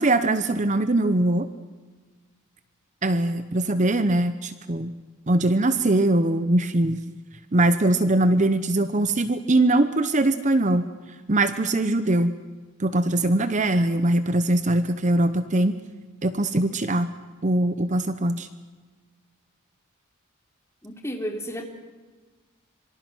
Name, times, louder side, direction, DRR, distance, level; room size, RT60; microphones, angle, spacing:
voice 1, 0.0-1.5 3.0-4.9 5.3-7.0 7.5-10.9 11.3-12.4 12.8-15.7 16.2-17.1 17.4-18.5, right 1 dB, 35° right, 11 dB, 0.9 m, -22 dB
voice 2, 20.8-21.6, equal, 10° left, 3 dB, 3.2 m, -32 dB
26.5 x 24.5 x 6.2 m, 1.3 s
head